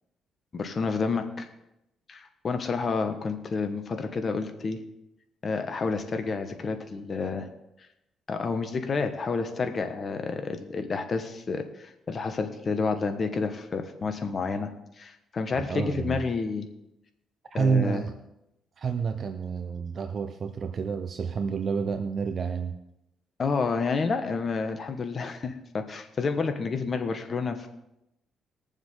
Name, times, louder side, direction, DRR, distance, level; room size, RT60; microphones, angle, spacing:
voice 1, 0.5-1.5 2.1-4.8 5.4-7.5 8.3-14.7 15.0-16.7 17.5-18.0 23.4-27.7, left 4 dB, 40° left, 7 dB, 1.4 m, -29 dB
voice 2, 15.7-16.2 17.5-18.2 18.8-22.8, right 5 dB, 50° right, 8 dB, 0.8 m, -29 dB
21.0 x 7.2 x 3.9 m, 0.85 s
cardioid pair, 90°, 0 cm